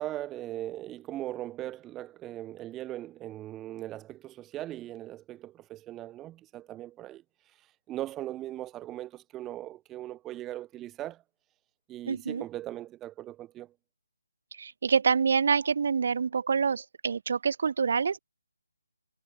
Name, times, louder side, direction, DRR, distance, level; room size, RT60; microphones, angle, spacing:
voice 1, 0.0-7.2 7.9-11.2 11.9-13.7, right 14 dB, 10° right, 0.7 m, -39 dB
voice 2, 12.1-12.4 14.6-18.2, right 6 dB, 45° right, 0.3 m, -26 dB
figure-of-eight pair, 150°, 0 cm